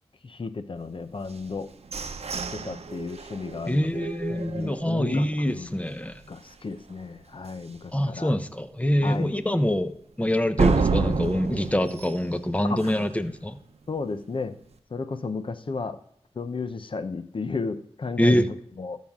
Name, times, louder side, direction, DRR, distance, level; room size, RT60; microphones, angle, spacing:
voice 1, 0.2-1.7 2.5-5.8 6.3-8.3 9.0-9.4 12.7-12.9 13.9-14.6 14.9-16.0 16.4-19.0, left 4 dB, 50° left, 11 dB, 0.7 m, -33 dB
sound 1, 1.3-5.2 5.6-5.7 6.1-6.5 6.9-7.0 7.5-7.6 10.6-13.2, right 4 dB, 70° right, 0.7 m, -29 dB
voice 2, 3.7-6.2 7.9-9.9 10.2-13.6 18.2-18.5, left 1 dB, 10° left, 10 dB, 0.8 m, -25 dB
13.5 x 5.7 x 3.7 m, 0.69 s
cardioid pair, 55°, 11 cm